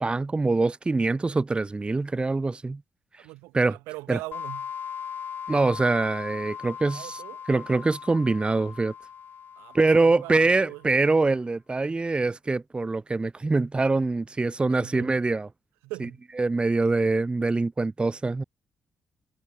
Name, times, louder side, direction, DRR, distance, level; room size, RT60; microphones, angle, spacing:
voice 1, 0.0-2.8 3.1-3.3 3.5-3.8 4.1-4.2 5.5-7.2 7.5-8.9 9.7-15.5 16.0-16.1 16.4-18.4, right 3 dB, 25° right, 0.5 m, -24 dB
voice 2, 3.2-4.7 6.9-7.4 9.6-10.8 14.7-15.1 15.8-16.2, right 22 dB, 80° right, 1.2 m, -41 dB
sound 1, 4.3-10.8, left 7 dB, 55° left, 0.6 m, -39 dB
hypercardioid pair, 40°, 4 cm